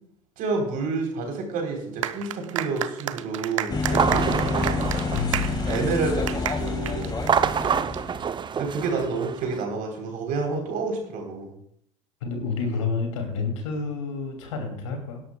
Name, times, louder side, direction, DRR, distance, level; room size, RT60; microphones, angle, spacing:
voice 1, 0.4-5.0 5.7-7.2 8.6-11.5, right 4 dB, 60° right, 2 dB, 3.5 m, -29 dB
sound 1, 2.0-8.0, right 12 dB, 85° right, 0.5 m, -32 dB
sound 2, 3.7-8.3, left 4 dB, 25° left, 2.7 m, -28 dB
sound 3, 3.8-6.1 7.1-9.6, right 7 dB, 30° right, 0.6 m, -27 dB
voice 2, 5.1-5.6 12.2-15.2, left 4 dB, 80° left, 3 dB, 2.6 m, -29 dB
19.0 x 11.0 x 2.3 m, 0.70 s
hypercardioid pair, 70°, 16 cm